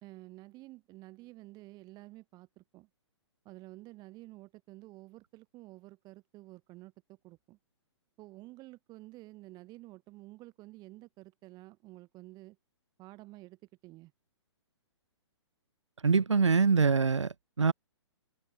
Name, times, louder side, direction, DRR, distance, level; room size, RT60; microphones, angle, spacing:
voice 1, 0.0-2.9 3.5-6.9 7.2-7.6 8.2-12.6 13.0-14.1, right 19 dB, 25° right, 3.5 m, -51 dB
voice 2, 16.0-17.7, right 5 dB, 90° right, 0.5 m, -24 dB
figure-of-eight pair, 125°, 15 cm